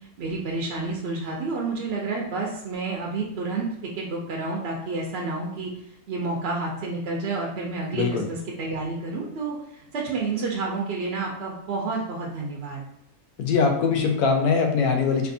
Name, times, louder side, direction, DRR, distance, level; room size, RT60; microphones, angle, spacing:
voice 1, 0.2-5.7 6.1-12.8, right 3 dB, 60° right, -1 dB, 0.7 m, -30 dB
voice 2, 7.9-8.3 13.4-15.3, left 5 dB, 90° left, 3 dB, 1.2 m, -22 dB
4.3 x 2.7 x 2.6 m, 0.77 s
omnidirectional pair, 1.6 m